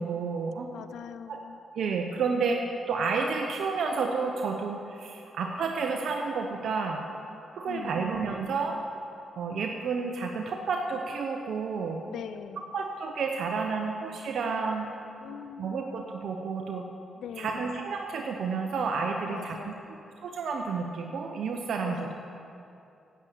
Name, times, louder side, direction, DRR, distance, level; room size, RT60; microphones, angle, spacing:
voice 1, 0.0-0.7 1.3-1.4 1.7-7.0 7.5-8.8 9.4-12.0 12.7-14.9 15.6-16.8 17.4-19.7 20.2-22.1, right 4 dB, 75° right, 2 dB, 0.8 m, -30 dB
voice 2, 0.7-1.6 7.6-8.0 12.1-12.7 15.2-15.8 17.2-17.7 19.3-19.9 21.8-22.3, left 8 dB, 80° left, 12 dB, 0.4 m, -42 dB
8.4 x 8.3 x 8.3 m, 2.7 s
supercardioid pair, 60°, 0 cm